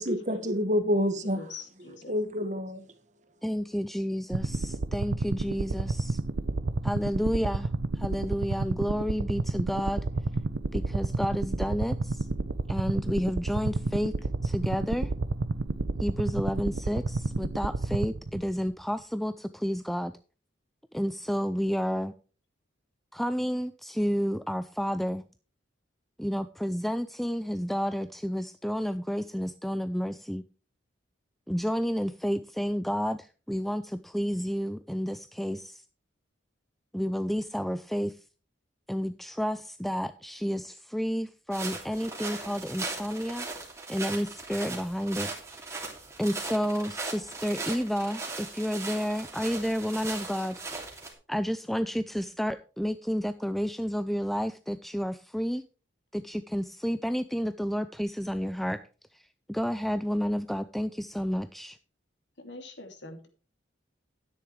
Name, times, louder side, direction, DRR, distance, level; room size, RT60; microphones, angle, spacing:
voice 1, 0.0-1.4 2.1-2.8, equal, 40° right, 1.6 m, -27 dB
voice 2, 1.2-2.1 62.4-63.3, left 3 dB, 70° left, 2.7 m, -44 dB
voice 3, 3.4-6.2 6.8-7.7 8.0-10.0 10.7-12.3 12.7-14.1 14.4-15.1 16.0-20.1 20.9-22.1 23.1-25.2 26.2-30.4 31.5-35.8 36.9-38.2 38.9-43.5 43.9-45.3 45.6-45.7 46.2-50.6 51.3-55.6 56.1-58.8 59.5-61.8, equal, ahead, 0.4 m, -30 dB
sound 1, 4.3-18.7, right 3 dB, 70° right, 0.7 m, -30 dB
sound 2, 41.5-51.1, right 3 dB, 15° right, 2.9 m, -38 dB
12.5 x 10.0 x 3.2 m
head